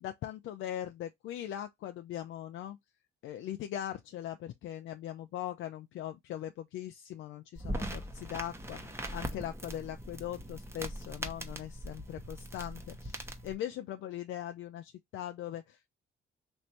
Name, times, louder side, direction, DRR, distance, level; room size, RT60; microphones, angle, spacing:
voice 1, 0.0-2.8 3.2-15.9, left 11 dB, 75° left, 0.5 m, -40 dB
sound 1, 7.5-13.5, right 1 dB, 15° right, 0.9 m, -41 dB
3.2 x 2.6 x 4.1 m
cardioid pair, 90°, 20 cm